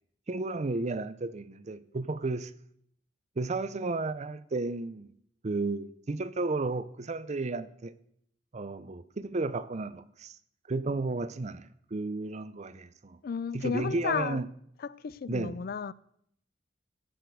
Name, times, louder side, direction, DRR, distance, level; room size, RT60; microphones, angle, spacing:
voice 1, 0.3-2.5 3.4-5.1 5.4-7.9 8.5-10.4 10.7-13.2 13.5-14.5 15.3-15.6, right 3 dB, 40° right, 0.6 m, -33 dB
voice 2, 13.2-14.4 14.8-15.9, left 6 dB, 55° left, 0.4 m, -33 dB
15.0 x 5.1 x 7.8 m
head